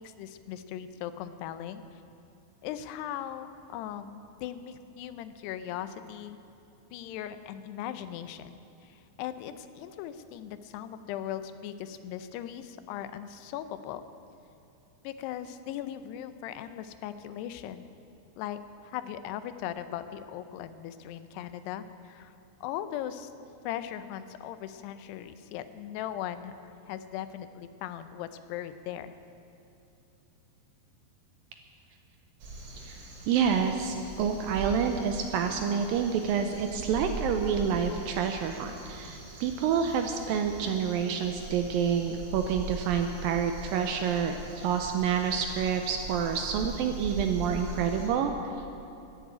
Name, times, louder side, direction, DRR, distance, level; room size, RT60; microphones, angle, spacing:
voice 1, 0.0-2.0 2.6-6.4 6.9-14.0 15.0-17.8 18.4-18.6 18.8-22.4 22.6-23.3 23.6-29.2, left 11 dB, 90° left, 11 dB, 2.8 m, -39 dB
Crow, 32.4-48.1, right 2 dB, 65° right, 5.0 m, -41 dB
voice 2, 33.3-48.3, right 7 dB, 80° right, 5 dB, 2.1 m, -28 dB
12.5 x 10.0 x 9.0 m, 2.7 s
omnidirectional pair, 4.7 m